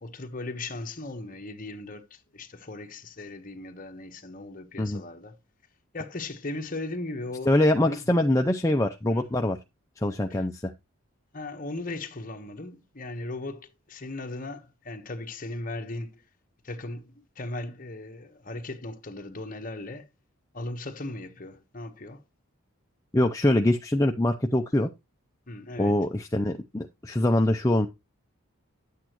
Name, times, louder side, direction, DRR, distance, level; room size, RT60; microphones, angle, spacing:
voice 1, 0.0-5.3 5.9-7.5 7.8-8.0 9.1-9.3 10.3-10.4 11.3-16.2 16.6-20.1 20.5-22.2 25.5-26.0, left 2 dB, 40° left, 1.2 m, -37 dB
voice 2, 7.5-9.6 10.0-10.7 23.1-24.9 25.8-27.9, left 1 dB, 15° left, 0.5 m, -24 dB
10.0 x 8.5 x 3.0 m
head